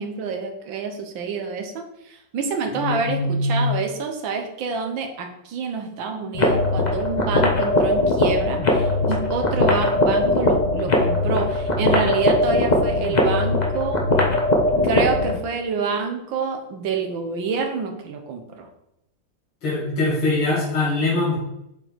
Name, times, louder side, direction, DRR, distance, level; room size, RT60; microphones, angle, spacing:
voice 1, 0.0-14.1 14.8-18.7, right 5 dB, 65° right, 5 dB, 1.6 m, -27 dB
voice 2, 2.7-3.7 19.6-21.4, left 2 dB, 75° left, -7 dB, 3.1 m, -22 dB
sound 1, 6.3-15.4, left 2 dB, 40° left, 0.6 m, -20 dB
7.7 x 4.5 x 4.6 m, 0.83 s
omnidirectional pair, 2.4 m